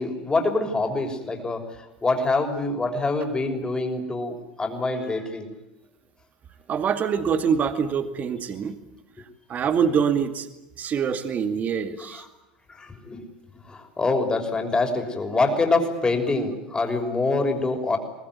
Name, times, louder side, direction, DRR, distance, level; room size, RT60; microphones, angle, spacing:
voice 1, 0.0-5.5 12.0-12.3 12.7-13.2 13.7-18.0, left 3 dB, 20° left, 5 dB, 6.1 m, -25 dB
voice 2, 6.7-8.8 9.5-10.5 10.8-12.2, right 7 dB, 40° right, 8 dB, 2.3 m, -24 dB
24.5 x 19.5 x 9.5 m, 0.93 s
hypercardioid pair, 80°, 4 cm